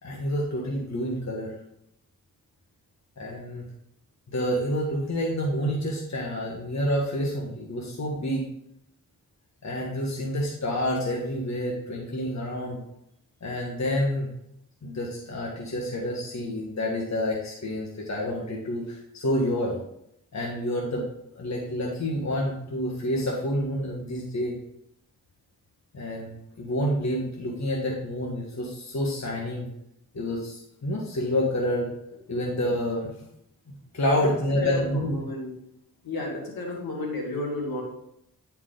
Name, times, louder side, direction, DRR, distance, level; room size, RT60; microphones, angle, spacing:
voice 1, 0.0-1.6 3.2-3.6 4.3-8.5 9.6-12.8 13.4-14.3 14.8-19.8 20.3-21.1 21.3-24.6 25.9-29.7 30.1-31.9 32.3-33.1 33.7-35.2, equal, 50° left, -2 dB, 1.5 m, -28 dB
voice 2, 34.2-35.6 36.0-37.8, left 2 dB, 85° left, 0 dB, 2.1 m, -33 dB
9.3 x 4.7 x 3.8 m, 0.77 s
cardioid pair, 50°, 35 cm